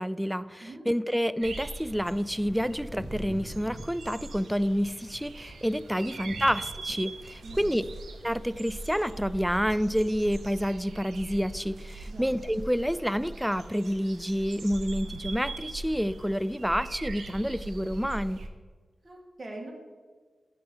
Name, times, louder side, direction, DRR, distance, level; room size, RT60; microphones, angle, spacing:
voice 1, 0.0-7.9 8.2-18.4, equal, 5° right, 16 dB, 0.3 m, -29 dB
sound 1, 1.4-18.5, right 3 dB, 90° right, 0.7 m, -41 dB
sound 2, 1.7-8.1, equal, 20° left, 2.2 m, -47 dB
voice 2, 6.0-6.4 7.4-7.9 12.1-12.3 19.0-19.7, right 2 dB, 45° right, 0 dB, 2.0 m, -44 dB
11.5 x 3.8 x 5.6 m, 1.5 s
cardioid pair, 50°, 0 cm